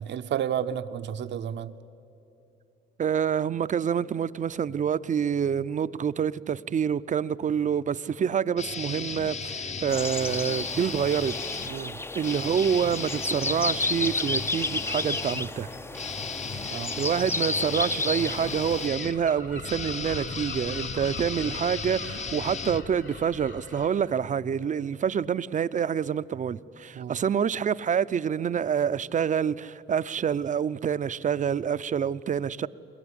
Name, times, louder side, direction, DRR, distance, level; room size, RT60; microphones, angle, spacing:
voice 1, 0.0-1.7 11.7-12.0 16.7-16.9 26.9-27.2, right 9 dB, 65° right, 0.8 m, -31 dB
voice 2, 3.0-11.3 11.7-11.9 12.1-15.7 16.5-32.7, right 7 dB, 40° right, 0.6 m, -27 dB
sound 1, 8.6-11.7 12.2-23.4, left 5 dB, 35° left, 0.8 m, -35 dB
sound 2, 9.9-18.9, left 2 dB, 10° left, 0.5 m, -32 dB
Gull seagull, 18.1-23.9, left 4 dB, 70° left, 4.7 m, -42 dB
22.5 x 21.5 x 9.9 m
cardioid pair, 90°, 20 cm